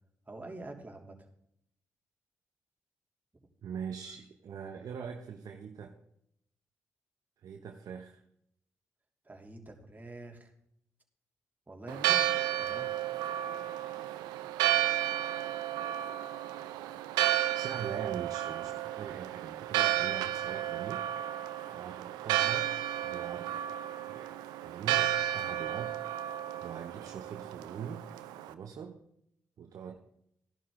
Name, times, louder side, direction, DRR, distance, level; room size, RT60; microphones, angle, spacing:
voice 1, 0.3-1.3 3.3-3.4 9.2-10.5 11.7-12.9, right 2 dB, 25° right, 2 dB, 3.1 m, -46 dB
voice 2, 3.6-6.0 7.4-8.2 17.5-22.7 23.0-23.7 24.1-26.0 26.2-26.3 26.6-28.1 28.5-29.0 29.6-30.0, right 7 dB, 65° right, 5 dB, 1.0 m, -43 dB
Church bell, 11.9-28.5, right 12 dB, 80° right, 0.6 m, -32 dB
15.0 x 11.0 x 3.8 m, 0.74 s
hypercardioid pair, 45°, 7 cm